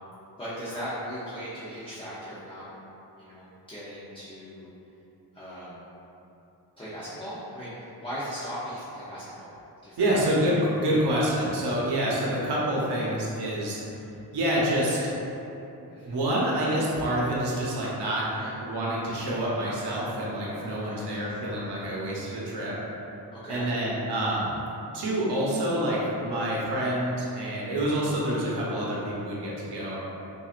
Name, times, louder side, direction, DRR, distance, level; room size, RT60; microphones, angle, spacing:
voice 1, 0.4-2.6 3.2-4.7 5.3-5.8 6.8-9.5 9.8-10.1 15.9-16.2 18.3-18.5 20.7-21.1 23.3-23.7 26.3-26.6, equal, 15° left, -11 dB, 0.7 m, -38 dB
voice 2, 10.0-13.8 14.3-15.1 16.0-18.3 18.6-22.8 23.5-24.5 24.9-30.0, right 1 dB, 90° right, -5 dB, 0.9 m, -27 dB
6.1 x 2.5 x 2.4 m, 2.9 s
wide cardioid pair, 130°, 40 cm